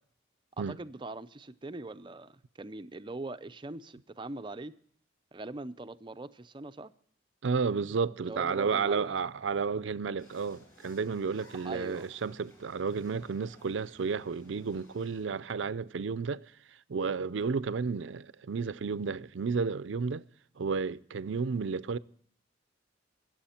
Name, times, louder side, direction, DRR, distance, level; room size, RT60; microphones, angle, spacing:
voice 1, 0.6-4.8 5.3-6.9 8.3-9.2 11.6-12.1, right 2 dB, 25° right, 0.5 m, -42 dB
voice 2, 7.4-16.5 16.9-20.2 20.6-22.0, right 5 dB, 80° right, 0.5 m, -32 dB
sound 1, 10.2-15.2, left 1 dB, 15° left, 6.6 m, -58 dB
23.0 x 7.7 x 4.3 m
head